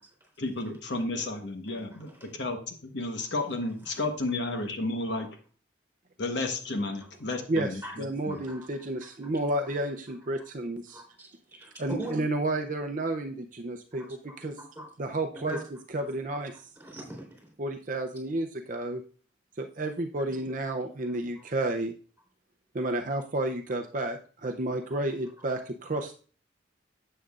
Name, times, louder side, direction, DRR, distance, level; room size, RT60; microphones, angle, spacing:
voice 1, 0.4-5.3 6.2-7.8 8.3-8.4, left 2 dB, 70° left, 5 dB, 1.1 m, -32 dB
voice 2, 7.5-11.0 11.8-14.6 15.0-15.6 15.9-16.6 17.6-19.0 19.6-22.0 22.7-26.1, right 2 dB, 45° right, 5 dB, 0.5 m, -31 dB
voice 3, 10.9-11.7 12.0-12.1 13.9-14.1 14.6-14.9 15.5-15.6 16.8-17.5 20.7-20.8 21.4-21.5, right 1 dB, 10° right, -2 dB, 3.8 m, -42 dB
10.5 x 7.7 x 2.4 m, 0.40 s
head